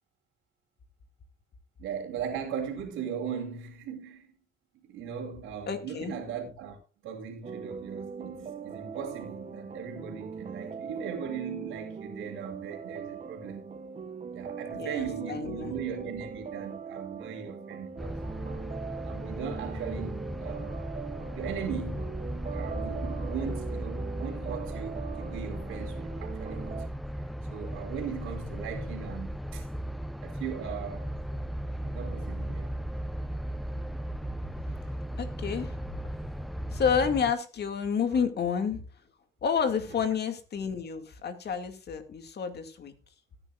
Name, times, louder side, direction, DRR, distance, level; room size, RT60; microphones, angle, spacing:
voice 1, 1.8-4.3 4.8-6.8 7.0-13.7 14.3-18.2 19.0-20.7 21.3-22.0 22.5-26.8 27.5-29.7 30.2-31.1 31.8-32.7 38.1-38.2, right 7 dB, 85° right, 3.1 m, -38 dB
voice 2, 5.7-6.1 14.8-15.8 35.1-36.0 36.7-38.8 39.4-42.9, left 6 dB, 55° left, 2.3 m, -30 dB
sound 1, 7.4-26.9, right 6 dB, 35° right, 0.9 m, -41 dB
sound 2, 18.0-37.3, equal, ahead, 0.6 m, -36 dB
18.0 x 10.0 x 2.5 m
cardioid pair, 90°, 20 cm